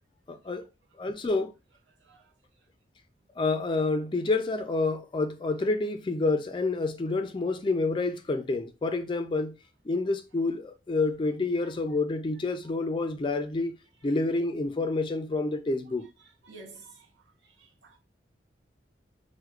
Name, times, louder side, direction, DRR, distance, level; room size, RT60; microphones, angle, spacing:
voice 1, 0.3-0.6 1.0-1.5 3.4-9.6 9.9-13.7 14.0-16.1, left 3 dB, 25° left, 0.3 m, -28 dB
voice 2, 2.0-2.3 16.2-17.1 17.4-18.0, right 3 dB, 80° right, 0.8 m, -51 dB
4.6 x 2.1 x 2.3 m
head